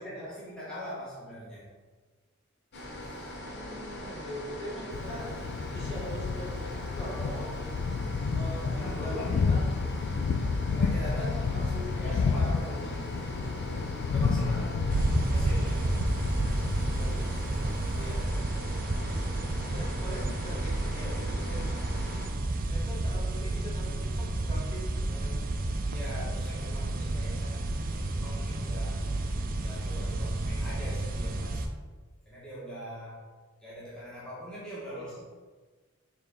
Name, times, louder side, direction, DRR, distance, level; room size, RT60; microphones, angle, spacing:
voice 1, 0.0-1.7 2.7-2.9 5.0-5.3 8.6-9.5 10.6-13.1 14.0-14.8 15.3-15.9 18.0-18.3 25.8-29.0 29.5-31.7 32.2-33.2 33.6-35.2, equal, 5° left, -10 dB, 1.5 m, -42 dB
sound 1, 2.7-22.3, left 1 dB, 55° left, 1.0 m, -41 dB
voice 2, 3.4-5.3 5.7-7.7 8.3-9.7 11.5-12.7 16.5-17.9 19.5-21.7 22.7-25.4 34.9-35.1, equal, 30° left, -6 dB, 1.7 m, -43 dB
Thunder, 4.9-18.3, left 4 dB, 75° left, 0.4 m, -31 dB
sound 2, 14.9-31.7, right 2 dB, 45° right, 0.5 m, -31 dB
6.8 x 3.8 x 3.7 m, 1.4 s
head